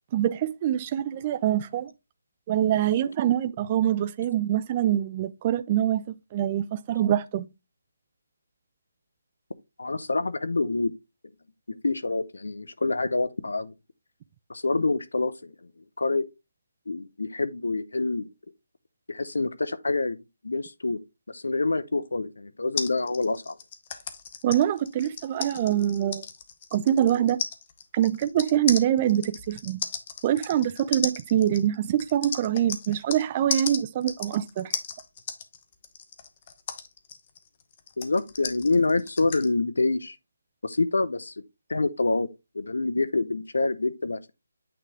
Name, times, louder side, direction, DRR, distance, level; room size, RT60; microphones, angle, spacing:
voice 1, 0.1-1.9 2.5-6.0 6.3-7.5 24.4-26.2 26.7-27.4 27.9-29.8 30.2-34.7, right 11 dB, 25° right, 0.3 m, -24 dB
voice 2, 9.8-10.9 11.8-13.7 14.5-15.5 16.0-16.3 16.9-18.3 19.1-20.2 20.4-21.0 21.3-23.6 38.0-40.2 40.6-41.3 41.7-42.3 42.5-44.3, left 3 dB, 80° left, 0.7 m, -26 dB
sound 1, 22.8-33.2 33.5-39.5, left 7 dB, 35° left, 0.8 m, -35 dB
8.8 x 3.2 x 3.5 m
figure-of-eight pair, 160°, 0 cm